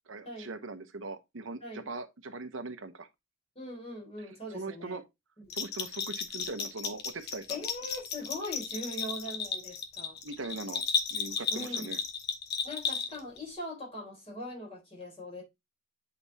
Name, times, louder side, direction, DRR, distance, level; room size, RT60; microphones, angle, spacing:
voice 1, 0.1-3.1 4.2-4.3 4.5-5.0 5.5-7.6 10.2-10.8 11.1-12.0, right 3 dB, 80° right, 0.9 m, -40 dB
voice 2, 3.6-5.0 5.4-5.6 7.5-10.2 11.5-11.9 12.6-15.4, left 1 dB, 30° left, 3.7 m, -41 dB
Bell, 5.5-13.4, left 6 dB, 55° left, 1.1 m, -34 dB
8.2 x 4.2 x 2.7 m
head